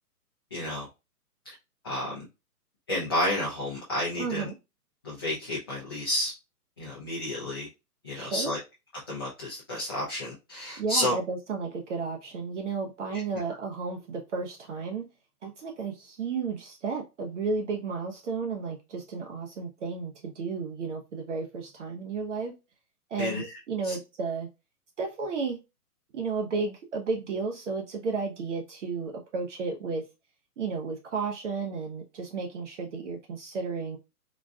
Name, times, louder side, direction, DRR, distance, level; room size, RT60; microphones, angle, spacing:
voice 1, 0.5-0.9 1.4-1.5 1.8-2.2 2.9-4.5 5.0-6.3 6.8-7.7 8.0-8.6 9.1-11.2 23.2-23.6 23.9-24.0, left 1 dB, 15° left, 0.4 m, -31 dB
voice 2, 4.2-4.6 8.1-8.5 10.8-15.1 15.4-22.5 23.1-24.5 25.0-25.6 26.1-30.1 30.6-34.0, right 4 dB, 50° right, 0.6 m, -33 dB
3.9 x 2.2 x 2.3 m
hypercardioid pair, 135°, 46 cm